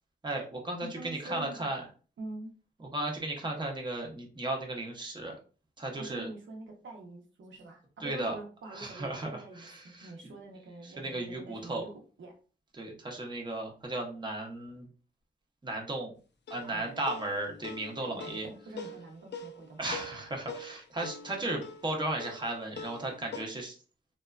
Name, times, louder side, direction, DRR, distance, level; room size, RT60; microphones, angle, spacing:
voice 1, 0.2-1.8 2.9-5.3 5.8-6.3 8.0-8.4 8.7-10.1 10.8-11.8 12.8-14.9 15.6-16.1 16.5-18.5 19.8-23.8, right 2 dB, 25° right, 1 dB, 0.6 m, -35 dB
voice 2, 0.8-1.7 2.2-2.5 6.0-12.4 16.6-17.1 18.0-19.9, right 2 dB, 85° right, 2 dB, 0.6 m, -45 dB
sound 1, 16.5-23.5, left 4 dB, 65° left, 0.4 m, -44 dB
2.9 x 2.2 x 2.3 m, 0.37 s
wide cardioid pair, 115°, 19 cm